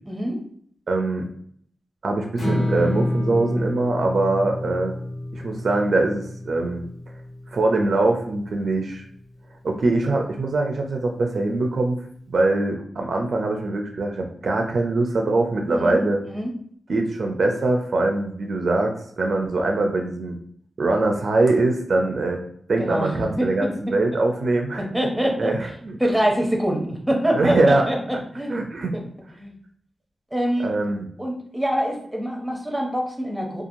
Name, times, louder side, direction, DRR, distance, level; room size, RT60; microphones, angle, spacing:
voice 1, 0.1-0.4 15.7-16.0 16.3-16.5 22.8-23.7 24.8-25.5 26.0-28.6 28.9-29.0 29.3-29.5 30.3-30.7 31.2-33.6, equal, 5° right, 0 dB, 0.6 m, -25 dB
voice 2, 0.9-1.3 2.0-4.9 5.3-6.8 7.5-9.0 9.6-12.0 12.3-16.2 16.9-20.4 20.8-22.4 22.7-24.8 25.4-26.0 27.3-27.8 28.5-29.0 30.6-31.0, right 2 dB, 55° right, 3 dB, 0.4 m, -22 dB
Strum, 2.4-8.6, left 1 dB, 80° left, 1.4 m, -29 dB
2.8 x 2.3 x 2.6 m, 0.63 s
wide cardioid pair, 145°, 0 cm